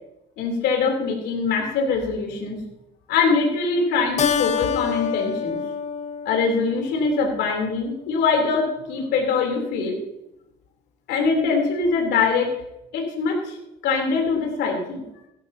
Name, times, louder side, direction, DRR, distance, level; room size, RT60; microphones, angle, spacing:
voice 1, 0.4-2.6 3.1-5.6 6.2-10.0 11.1-12.5 12.9-13.6 13.8-15.0, left 4 dB, 85° left, 1 dB, 3.3 m, -23 dB
Keyboard (musical), 4.2-7.1, left 7 dB, 45° left, 0.8 m, -27 dB
16.5 x 12.0 x 2.8 m, 0.85 s
cardioid pair, 110°, 17 cm